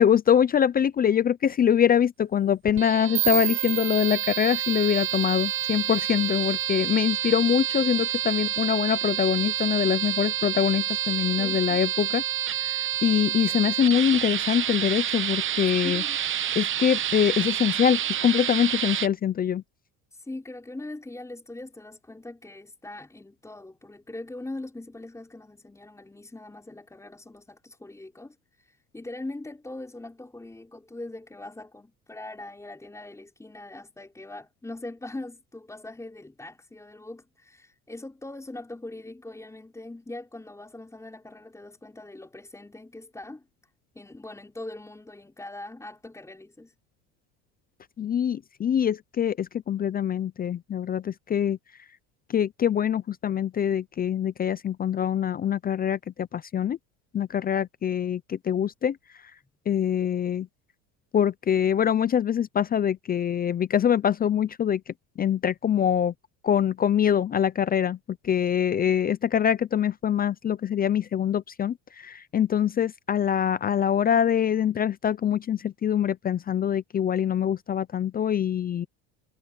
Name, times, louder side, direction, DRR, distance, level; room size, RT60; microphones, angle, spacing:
voice 1, 0.0-12.2 12.6-16.0 16.6-19.6 48.0-51.6 52.3-56.8 57.1-59.0 59.7-60.5 61.1-66.1 66.4-68.0 68.2-78.9, left 9 dB, 25° left, 0.5 m, -24 dB
sound 1, 2.7-19.1, right 11 dB, 35° right, 1.0 m, -29 dB
sound 2, 3.1-6.1, right 22 dB, 85° right, 1.9 m, -31 dB
voice 2, 11.4-11.8 15.8-16.2 20.1-43.4 43.9-46.7, left 2 dB, 10° left, 5.0 m, -41 dB
cardioid pair, 120°, 36 cm